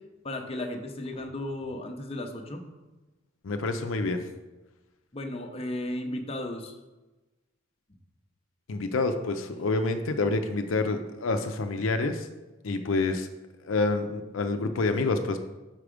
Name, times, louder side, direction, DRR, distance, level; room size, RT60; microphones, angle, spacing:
voice 1, 0.2-2.6 5.1-6.8, left 1 dB, 30° left, 4 dB, 0.6 m, -34 dB
voice 2, 3.4-4.3 8.7-12.3 12.6-13.3 13.6-15.4, left 3 dB, 70° left, 7 dB, 0.5 m, -27 dB
5.8 x 4.8 x 4.9 m, 1.1 s
head